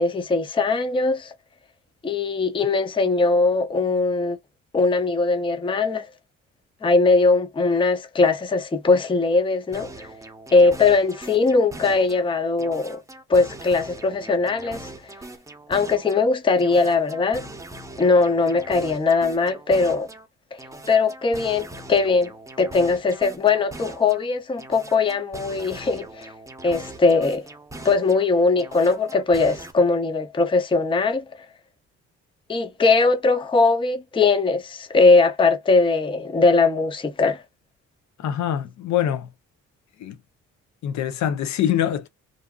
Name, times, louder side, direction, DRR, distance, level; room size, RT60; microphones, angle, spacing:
voice 1, 0.0-1.3 2.0-4.4 4.7-6.1 6.8-10.1 10.5-13.0 13.3-14.9 15.7-17.5 18.0-20.1 20.5-20.6 20.9-22.3 22.6-26.3 26.6-27.4 27.8-31.2 32.5-37.4, left 3 dB, 15° left, 0.5 m, -20 dB
sound 1, 9.7-12.3 12.6-16.3 16.6-20.3 20.6-24.3 24.6-28.3 28.6-29.7, right 2 dB, 10° right, 0.8 m, -41 dB
voice 2, 38.2-39.3 40.0-40.2 40.8-42.1, left 10 dB, 70° left, 0.7 m, -24 dB
2.6 x 2.5 x 2.3 m
cardioid pair, 90°, 30 cm